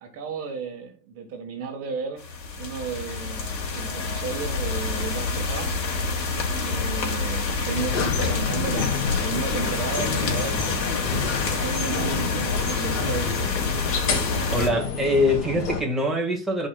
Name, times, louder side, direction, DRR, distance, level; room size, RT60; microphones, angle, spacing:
voice 1, 0.0-2.2 2.6-5.8 6.6-10.8 11.3-13.5, right 5 dB, 30° right, 1.6 m, -34 dB
sound 1, 2.2-14.7, left 4 dB, 90° left, 2.8 m, -28 dB
sound 2, 7.7-15.8, left 4 dB, 50° left, 3.1 m, -29 dB
voice 2, 14.5-16.7, left 1 dB, ahead, 1.9 m, -23 dB
15.5 x 5.3 x 2.4 m
hypercardioid pair, 135°, 49 cm